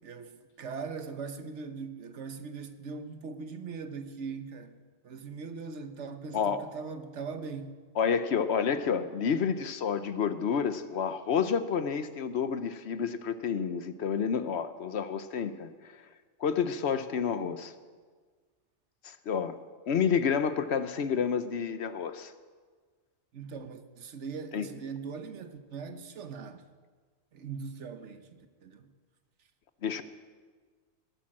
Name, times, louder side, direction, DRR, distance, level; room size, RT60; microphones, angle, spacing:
voice 1, 0.0-7.8 23.3-26.6 27.3-28.9, right 5 dB, 80° right, 1.3 m, -41 dB
voice 2, 8.0-15.7 16.4-17.7 19.0-19.6 19.9-22.3 24.5-24.7 29.8-30.0, left 7 dB, 70° left, 1.1 m, -29 dB
18.5 x 8.8 x 7.5 m
omnidirectional pair, 1.2 m